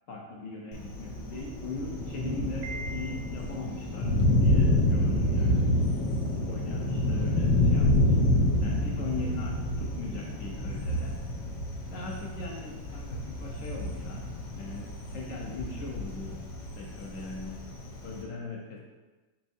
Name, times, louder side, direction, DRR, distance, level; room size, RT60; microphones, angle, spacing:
voice 1, 0.1-5.8 6.1-6.2 6.5-8.2 8.6-11.1 11.9-14.2 14.5-16.4 16.8-17.6 18.0-18.8, left 3 dB, 70° left, -1 dB, 0.8 m, -40 dB
Thunder, 0.7-18.2, left 1 dB, 90° left, 1.5 m, -28 dB
Piano, 2.6-3.7, right 2 dB, 75° right, 0.7 m, -41 dB
4.4 x 4.3 x 2.6 m, 1.2 s
omnidirectional pair, 2.0 m